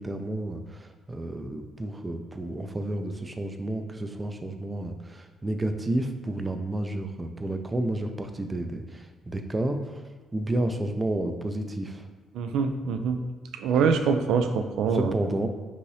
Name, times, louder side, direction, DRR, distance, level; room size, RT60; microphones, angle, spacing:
voice 1, 0.0-10.0 10.3-12.1 14.9-15.5, right 1 dB, 20° right, 7 dB, 0.4 m, -31 dB
voice 2, 12.3-13.2 13.5-15.2, right 5 dB, 85° right, 8 dB, 0.3 m, -24 dB
5.3 x 2.7 x 3.2 m, 1.3 s
cardioid pair, 90°, 0 cm